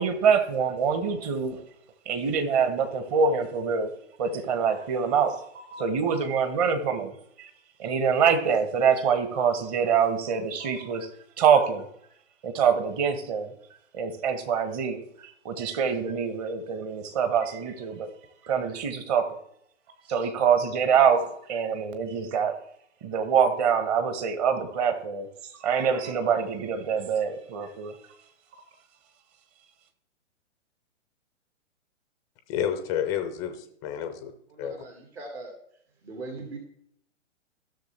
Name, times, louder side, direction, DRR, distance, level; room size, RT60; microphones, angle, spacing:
voice 1, 0.0-1.6 2.1-3.9 4.2-5.3 5.7-7.1 7.4-7.5 7.8-11.1 11.4-11.8 12.4-13.5 13.9-15.0 15.4-18.1 18.5-19.3 20.1-21.2 21.5-22.5 23.0-25.3 25.6-27.9, right 6 dB, 30° right, 9 dB, 1.3 m, -25 dB
voice 2, 32.5-34.3 34.6-34.8, left 9 dB, 10° left, 7 dB, 0.4 m, -30 dB
voice 3, 34.5-35.5 36.0-36.6, right 3 dB, 60° right, 2 dB, 2.2 m, -40 dB
15.5 x 6.6 x 3.3 m, 0.70 s
figure-of-eight pair, 120°, 37 cm